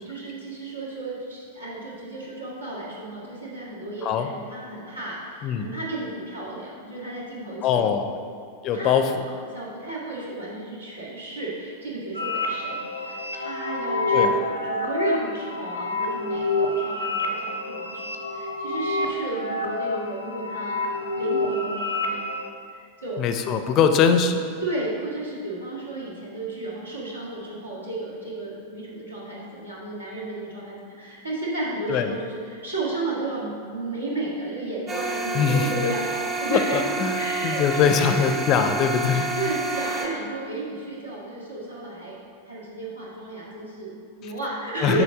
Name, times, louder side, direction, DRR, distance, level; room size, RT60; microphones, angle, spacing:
voice 1, 0.0-8.0 8.7-9.0 9.3-20.8 21.2-22.3 22.7-23.3 24.6-36.8 37.1-38.3 39.4-42.2 42.5-45.0, right 2 dB, 80° right, -6 dB, 1.8 m, -33 dB
voice 2, 7.6-8.1 8.6-9.2 14.1-14.3 23.2-24.4 31.9-32.1 35.3-35.7 36.5-37.2 37.4-39.3 44.2-44.3 44.8-45.0, left 7 dB, 35° left, 7 dB, 0.5 m, -22 dB
sound 1, 12.1-22.5, left 2 dB, 80° left, 0.6 m, -27 dB
sound 2, 34.9-40.1, right 3 dB, 20° right, 1.0 m, -29 dB
6.8 x 4.4 x 4.9 m, 2.3 s
figure-of-eight pair, 90°, 0 cm